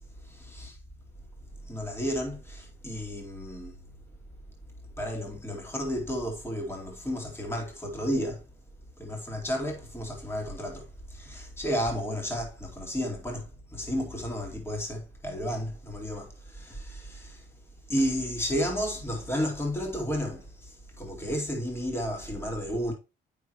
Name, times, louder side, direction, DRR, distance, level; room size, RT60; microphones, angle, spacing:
voice 1, 0.3-0.8 1.6-3.7 5.0-8.4 9.0-13.5 13.7-17.4 17.9-22.9, equal, 10° left, 2.5 m, -32 dB
8.3 x 6.1 x 2.9 m
cardioid pair, 90°, 20 cm